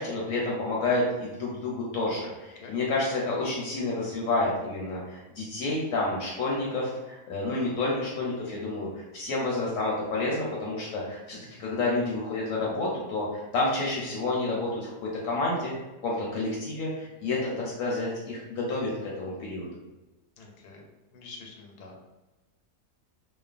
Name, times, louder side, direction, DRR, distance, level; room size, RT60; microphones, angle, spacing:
voice 1, 0.0-15.7 16.0-19.7, left 2 dB, 70° left, -4 dB, 0.9 m, -29 dB
voice 2, 20.4-20.9 21.1-22.0, left 4 dB, 85° left, 1 dB, 1.1 m, -47 dB
3.1 x 2.0 x 2.4 m, 1.1 s
omnidirectional pair, 1.7 m